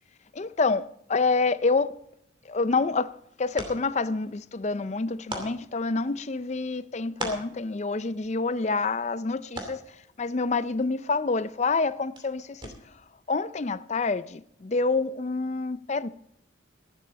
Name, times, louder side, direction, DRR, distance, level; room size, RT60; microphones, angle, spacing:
voice 1, 0.3-1.9 2.5-3.1 3.4-9.8 10.2-12.7 13.3-16.1, left 3 dB, 35° left, 0.5 m, -27 dB
sound 1, 2.4-13.1, right 2 dB, 25° right, 2.6 m, -44 dB
15.5 x 11.5 x 4.1 m
head